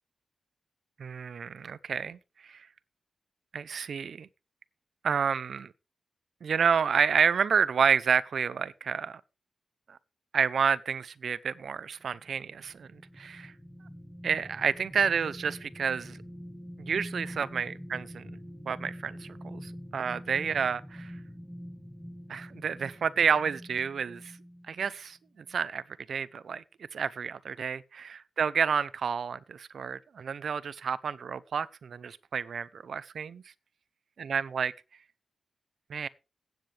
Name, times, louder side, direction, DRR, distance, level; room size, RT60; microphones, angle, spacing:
voice 1, 1.0-2.2 3.5-4.3 5.0-5.7 6.4-9.2 9.9-10.0 10.3-13.5 14.2-16.2 16.9-18.3 18.7-21.1 22.3-24.3 24.7-25.2 25.5-25.8 26.1-26.6 26.9-33.4 34.2-34.7 35.9-36.1, right 6 dB, 65° right, 0.7 m, -29 dB
sound 1, 12.0-24.9 25.4-25.6, equal, 5° right, 1.5 m, -45 dB
15.5 x 8.9 x 3.4 m
wide cardioid pair, 145°, 0 cm